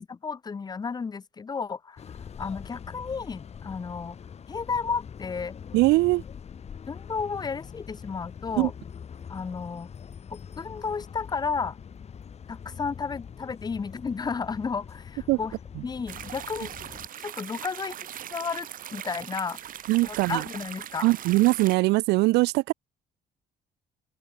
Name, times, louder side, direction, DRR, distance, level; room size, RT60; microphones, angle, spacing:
voice 1, 0.0-4.2 4.5-5.6 6.9-8.7 9.3-9.9 10.3-11.8 12.5-15.5 15.8-16.7 17.2-18.0 18.3-19.6 20.0-21.1, left 5 dB, 25° left, 0.9 m, -33 dB
sound 1, 2.0-17.1, left 7 dB, 40° left, 2.9 m, -43 dB
voice 2, 5.7-6.2 8.6-8.7 15.3-15.4 19.9-20.4 21.0-22.7, right 21 dB, 85° right, 0.6 m, -21 dB
sound 2, 16.1-21.8, right 10 dB, 55° right, 1.8 m, -40 dB
open air
cardioid pair, 110°, 17 cm